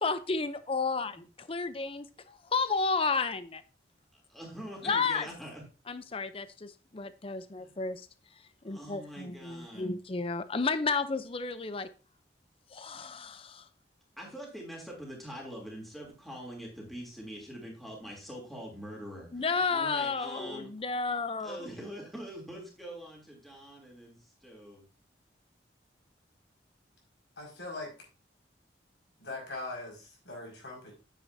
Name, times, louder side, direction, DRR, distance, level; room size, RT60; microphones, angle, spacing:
voice 1, 0.0-3.6 4.8-5.3 5.9-8.1 8.6-11.9 12.7-13.6 19.3-21.6, left 4 dB, 30° left, 0.6 m, -32 dB
voice 2, 4.1-5.6 7.6-7.7 8.6-9.9 14.2-20.7 21.1-21.2 21.4-24.8, equal, ahead, 3.0 m, -44 dB
voice 3, 27.4-27.9 29.2-30.9, left 2 dB, 75° left, 5.4 m, -41 dB
9.2 x 9.2 x 2.7 m
head